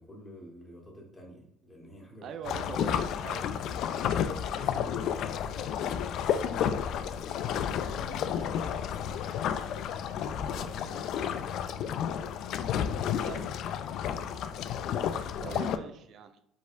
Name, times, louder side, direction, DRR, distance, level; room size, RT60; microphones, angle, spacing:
voice 1, 0.0-2.3 4.0-5.1 5.9-9.2 10.1-11.6, equal, 20° left, -1 dB, 1.6 m, -49 dB
voice 2, 2.2-3.5 13.2-13.5 15.4-16.4, right 7 dB, 55° right, 9 dB, 0.5 m, -42 dB
sound 1, 2.5-15.8, left 8 dB, 60° left, 0.3 m, -31 dB
4.8 x 4.1 x 2.6 m, 0.73 s
cardioid pair, 100°, 0 cm